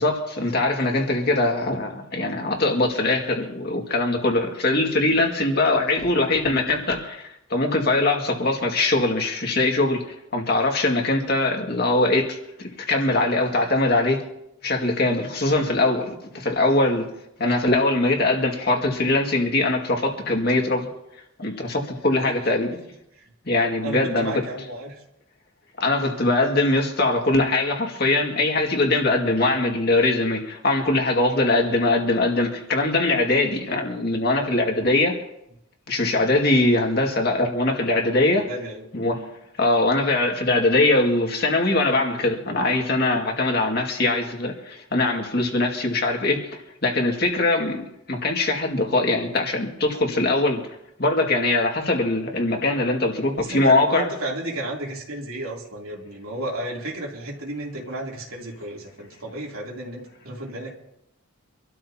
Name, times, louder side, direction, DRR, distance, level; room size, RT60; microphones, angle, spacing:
voice 1, 0.0-7.2 7.5-10.0 10.3-14.2 14.6-17.1 17.4-20.9 21.4-22.8 23.5-24.4 25.8-35.2 35.9-38.5 38.9-39.2 39.6-50.6 51.0-54.1, left 2 dB, 45° left, 2.1 m, -22 dB
voice 2, 23.8-24.9 38.3-38.8 53.4-60.7, right 1 dB, 85° right, 3.2 m, -33 dB
26.0 x 12.5 x 2.9 m
head